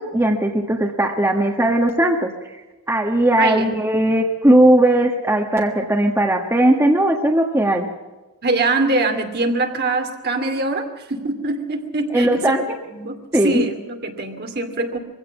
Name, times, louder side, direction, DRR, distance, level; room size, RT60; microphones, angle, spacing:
voice 1, 0.0-2.3 2.9-7.9 12.1-12.6 13.3-13.6, right 1 dB, 10° right, 2 dB, 1.4 m, -18 dB
voice 2, 3.4-3.7 8.4-12.6 12.9-13.2 13.4-15.0, right 2 dB, 45° right, 5 dB, 2.5 m, -23 dB
22.5 x 16.5 x 7.0 m, 1.2 s
head